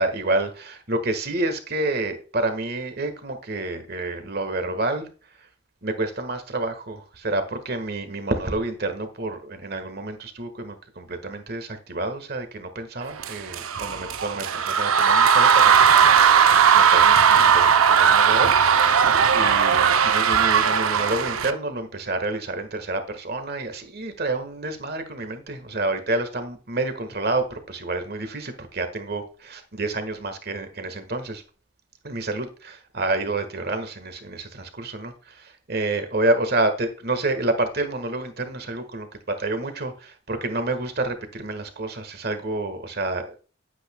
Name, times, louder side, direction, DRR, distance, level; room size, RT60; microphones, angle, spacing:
voice 1, 0.0-5.1 5.8-19.0 19.3-31.4 32.0-43.4, right 2 dB, 50° right, 1.5 m, -29 dB
sound 1, 13.2-21.5, right 7 dB, 85° right, 0.6 m, -17 dB
10.5 x 9.1 x 2.2 m
head